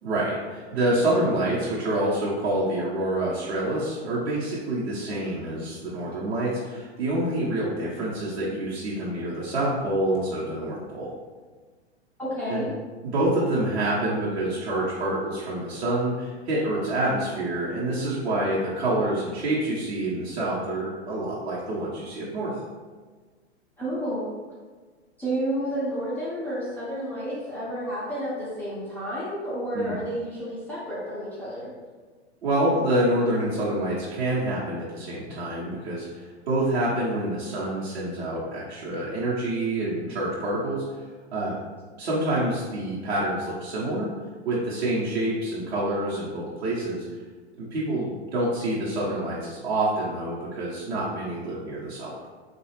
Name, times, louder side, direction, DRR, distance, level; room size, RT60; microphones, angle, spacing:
voice 1, 0.0-11.1 12.5-12.7 13.0-22.5 29.7-30.0 32.4-40.8 41.3-41.5 42.0-44.1 44.4-47.0 47.6-52.3, right 1 dB, 65° right, -8 dB, 0.9 m, -27 dB
voice 2, 12.2-12.7 23.8-24.3 25.2-31.7, equal, 5° left, -10 dB, 0.3 m, -30 dB
4.1 x 2.3 x 3.2 m, 1.4 s
figure-of-eight pair, 105°, 34 cm